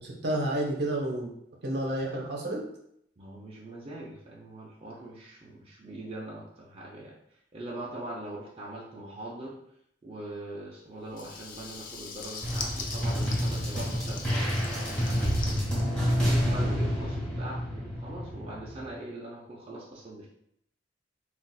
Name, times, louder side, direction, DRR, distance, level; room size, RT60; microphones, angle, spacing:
voice 1, 0.0-1.3 1.6-2.6, right 1 dB, 65° right, -1 dB, 0.7 m, -30 dB
voice 2, 3.2-7.1 7.5-9.5 10.0-20.3, right 1 dB, 30° right, -5 dB, 0.5 m, -42 dB
Water tap faucet / Liquid, 11.1-16.6, left 5 dB, 50° left, 0.4 m, -41 dB
sound 1, 12.4-18.9, equal, 5° left, 1.1 m, -29 dB
3.9 x 2.4 x 2.2 m, 0.73 s
head